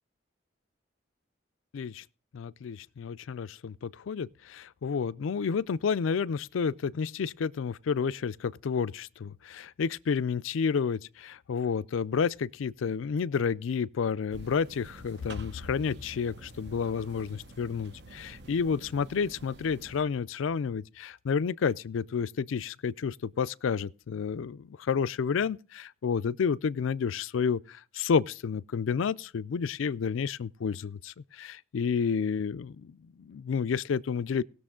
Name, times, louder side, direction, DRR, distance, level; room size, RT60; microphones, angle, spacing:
voice 1, 1.7-2.0 2.3-34.4, left 6 dB, 90° left, 0.4 m, -30 dB
sound 1, 14.3-20.0, right 2 dB, 60° right, 0.9 m, -49 dB
19.0 x 6.8 x 3.7 m
head